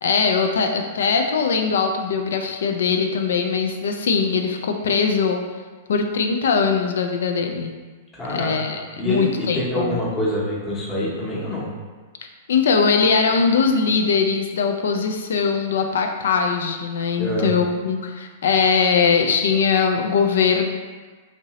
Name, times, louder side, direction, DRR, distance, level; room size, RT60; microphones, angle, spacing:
voice 1, 0.0-5.4 5.9-7.7 8.3-10.0 12.5-20.6, left 5 dB, 70° left, 4 dB, 0.4 m, -21 dB
voice 2, 8.1-11.7 17.2-17.5, equal, 20° left, -5 dB, 0.9 m, -26 dB
2.9 x 2.6 x 3.0 m, 1.4 s
hypercardioid pair, 110°, 0 cm